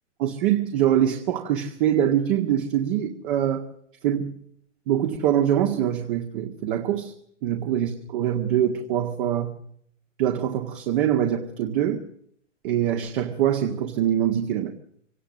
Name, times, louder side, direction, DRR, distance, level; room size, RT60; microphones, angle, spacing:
voice 1, 0.2-3.7 4.0-4.3 4.9-7.1 7.4-9.5 10.2-12.0 12.6-14.7, right 10 dB, 40° right, 4 dB, 1.9 m, -24 dB
24.5 x 18.5 x 6.4 m, 0.65 s
figure-of-eight pair, 115°, 38 cm